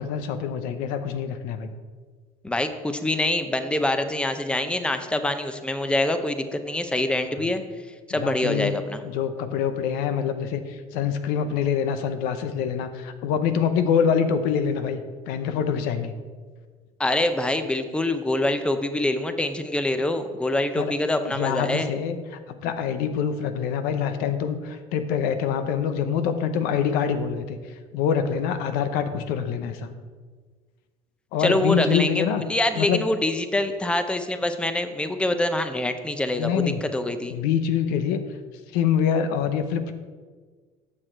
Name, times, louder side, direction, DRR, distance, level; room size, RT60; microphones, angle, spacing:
voice 1, 0.0-1.7 8.2-8.7 9.0-16.1 20.8-20.9 21.2-22.2 22.6-27.6 27.9-29.9 31.3-32.4 32.7-33.0 36.4-36.8 37.3-38.2 38.7-39.9, left 7 dB, 80° left, 9 dB, 0.7 m, -25 dB
voice 2, 2.4-7.6 8.1-9.0 17.0-21.9 31.4-32.2 32.5-37.3, left 1 dB, 5° left, 9 dB, 0.7 m, -25 dB
8.8 x 6.1 x 4.5 m, 1.5 s
supercardioid pair, 95°, 15 cm